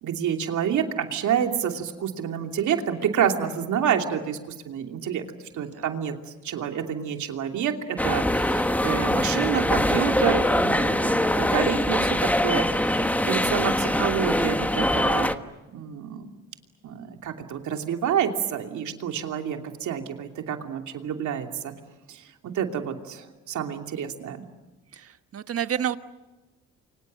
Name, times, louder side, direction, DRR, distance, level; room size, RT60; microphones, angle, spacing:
voice 1, 0.0-5.2 5.5-13.0 13.2-15.4 15.7-16.3 16.8-21.7 22.1-24.4, right 8 dB, 75° right, 4 dB, 2.9 m, -28 dB
voice 2, 5.5-5.9 11.0-11.7 24.9-26.0, right 9 dB, 50° right, 10 dB, 1.4 m, -32 dB
sound 1, 8.0-15.4, left 1 dB, 5° left, 1.3 m, -23 dB
29.5 x 24.5 x 7.6 m, 1.1 s
cardioid pair, 90°, 30 cm